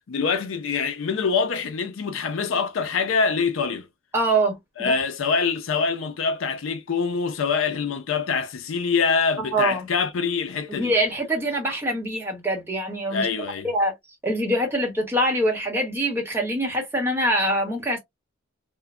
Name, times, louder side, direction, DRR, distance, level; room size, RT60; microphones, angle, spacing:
voice 1, 0.1-3.9 4.8-10.9 13.1-13.7, left 5 dB, 65° left, 0.4 m, -25 dB
voice 2, 4.1-4.9 9.5-9.9 10.7-13.3 13.6-13.9 14.2-18.0, right 1 dB, 10° right, 0.9 m, -24 dB
3.1 x 2.0 x 2.3 m
head